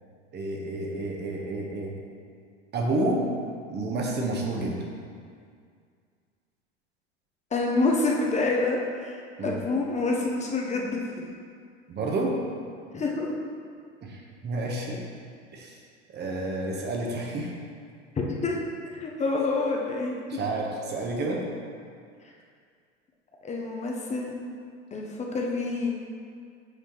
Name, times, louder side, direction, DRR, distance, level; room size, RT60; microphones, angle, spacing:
voice 1, 0.3-1.9 2.7-3.2 3.7-4.8 9.4-9.6 11.9-12.3 14.0-15.0 15.5-15.7 16.1-17.5 20.3-21.4, right 2 dB, 30° right, 0 dB, 1.1 m, -30 dB
voice 2, 7.5-11.3 12.9-13.3 18.2-18.6 18.9-20.4 23.4-24.3 24.9-25.9, left 3 dB, 20° left, -1 dB, 0.9 m, -27 dB
8.1 x 4.9 x 3.0 m, 2.2 s
figure-of-eight pair, 80°, 35 cm